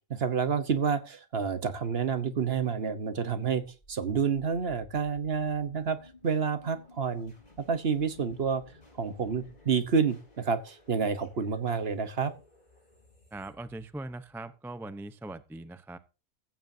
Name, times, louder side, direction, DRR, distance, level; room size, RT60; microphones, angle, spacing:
voice 1, 0.1-8.6 9.0-12.3, right 6 dB, 50° right, 1.2 m, -29 dB
sound 1, 3.8-14.6, left 2 dB, 30° left, 6.8 m, -57 dB
voice 2, 13.3-16.0, right 2 dB, 5° right, 0.4 m, -41 dB
15.0 x 14.5 x 2.7 m
omnidirectional pair, 1.4 m